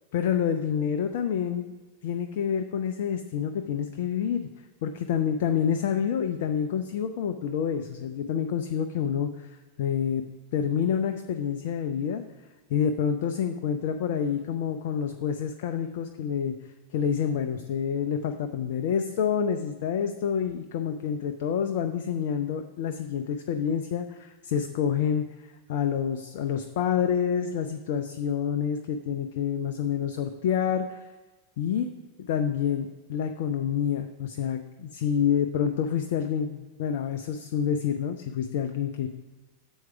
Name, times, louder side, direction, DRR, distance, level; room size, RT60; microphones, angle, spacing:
voice 1, 0.1-1.7 2.0-4.5 4.8-10.2 10.5-12.2 12.7-16.5 16.9-31.1 31.6-31.9 32.2-39.1, left 8 dB, 50° left, 7 dB, 0.3 m, -28 dB
7.1 x 4.6 x 5.6 m, 1.2 s
figure-of-eight pair, 90°, 0 cm